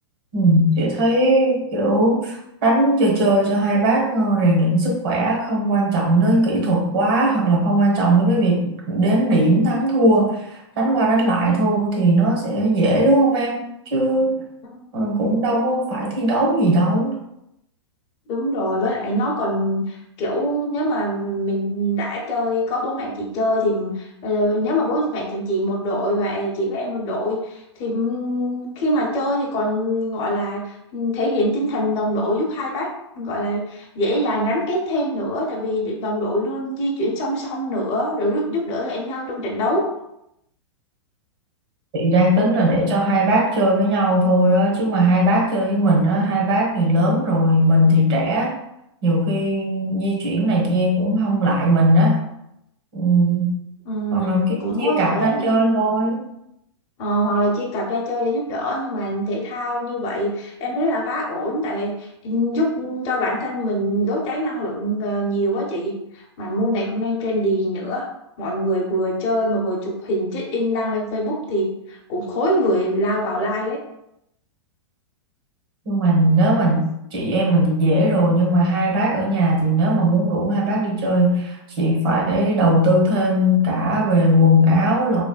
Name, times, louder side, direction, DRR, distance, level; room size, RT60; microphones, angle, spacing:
voice 1, 0.3-13.6 13.9-14.4 14.9-17.1 41.9-48.6 49.0-52.2 52.9-53.6 54.1-54.4 54.8-56.3 75.8-85.2, right 1 dB, 55° right, -2 dB, 1.2 m, -18 dB
voice 2, 18.3-32.9 33.2-39.8 53.9-55.6 57.0-61.9 62.2-68.0 68.4-73.8, equal, 40° left, -3 dB, 0.7 m, -24 dB
3.1 x 2.4 x 2.3 m, 0.82 s
hypercardioid pair, 115°, 15 cm